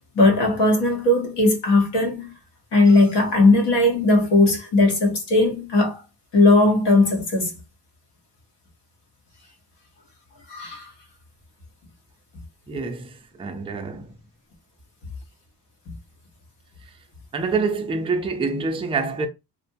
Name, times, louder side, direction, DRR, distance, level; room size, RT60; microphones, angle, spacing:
voice 1, 0.2-2.3 2.7-6.0 6.3-7.5 10.5-10.8, left 2 dB, 70° left, 1.0 m, -18 dB
voice 2, 12.7-14.2 16.8-16.9 17.3-19.3, right 4 dB, 15° right, 0.3 m, -26 dB
2.5 x 2.2 x 2.6 m
cardioid pair, 110°, 42 cm